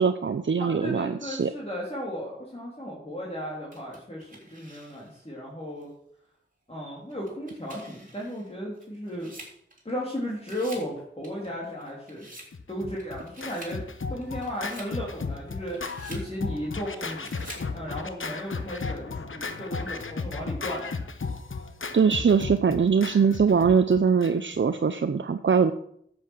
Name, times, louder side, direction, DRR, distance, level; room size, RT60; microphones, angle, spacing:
voice 1, 0.0-1.5 21.9-25.7, right 6 dB, 65° right, 9 dB, 0.6 m, -22 dB
voice 2, 0.6-5.9 6.7-9.3 9.8-12.3 12.7-13.8 14.1-17.3 17.7-20.9, equal, 30° left, -5 dB, 3.4 m, -35 dB
sound 1, 3.7-5.2 5.8-5.9 7.1-10.1 10.4-10.9 11.2-12.5 13.0-13.8 14.2-14.9 15.5-16.3 17.0-17.7, right 1 dB, 40° right, 3.4 m, -48 dB
Scratching (performance technique), 12.5-24.6, left 4 dB, 75° left, 1.0 m, -35 dB
10.5 x 7.9 x 6.3 m, 0.68 s
wide cardioid pair, 45°, 21 cm